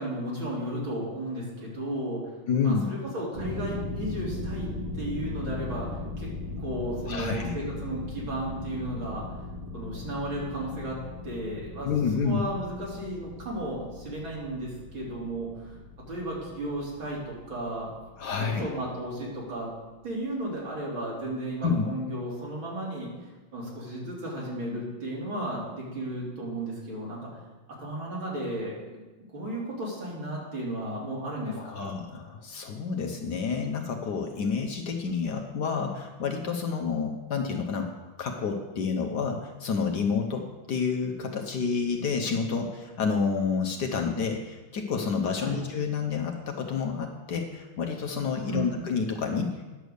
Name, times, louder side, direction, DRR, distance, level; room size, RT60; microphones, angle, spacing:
voice 1, 0.0-2.3 2.6-6.3 6.6-9.4 9.7-11.0 11.2-11.9 12.2-15.8 16.1-17.9 18.4-19.7 20.0-23.1 23.5-27.3 27.8-29.1 29.3-31.9 45.4-45.6 48.5-48.9, right 1 dB, 70° right, -5 dB, 3.8 m, -34 dB
voice 2, 2.5-2.9 7.1-7.5 11.8-12.4 18.2-18.6 21.6-21.9 31.5-37.9 38.2-49.6, left 5 dB, 60° left, 4 dB, 1.3 m, -29 dB
sound 1, 3.3-19.1, left 2 dB, 30° right, 0.4 m, -39 dB
10.0 x 6.9 x 6.5 m, 1.2 s
omnidirectional pair, 2.3 m